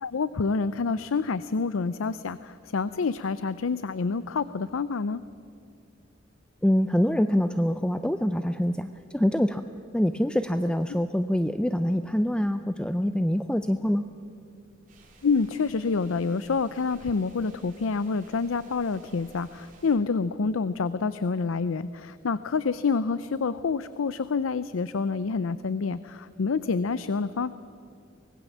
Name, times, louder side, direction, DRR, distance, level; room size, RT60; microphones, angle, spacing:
voice 1, 0.0-5.2 15.2-27.5, left 4 dB, 90° left, 15 dB, 0.5 m, -27 dB
voice 2, 6.6-9.6 9.9-14.1, equal, 5° left, 10 dB, 0.4 m, -25 dB
sound 1, 14.9-20.0, right 2 dB, 45° right, 4.4 m, -55 dB
24.5 x 19.5 x 7.3 m, 2.4 s
head